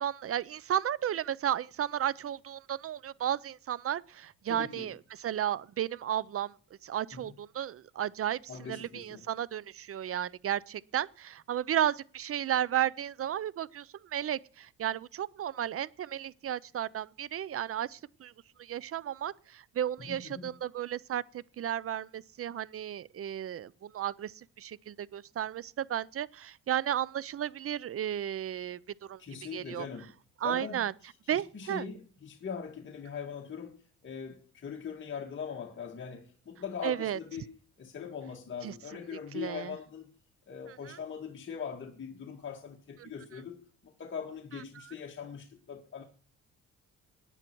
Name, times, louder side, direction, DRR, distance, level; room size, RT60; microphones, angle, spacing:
voice 1, 0.0-6.5 6.8-8.4 8.7-18.3 18.6-29.2 29.5-29.9 30.4-30.9 31.3-31.9 36.8-37.2 38.6-38.7 39.3-39.7 40.7-41.0 43.0-43.1, right 10 dB, 50° right, 0.6 m, -33 dB
voice 2, 4.5-4.9 7.1-7.3 8.5-9.3 20.0-20.6 29.2-30.1 30.4-30.8 31.2-37.5 37.8-40.1 40.5-46.0, left 6 dB, 40° left, 2.1 m, -41 dB
18.0 x 9.9 x 4.6 m
cardioid pair, 90°, 30 cm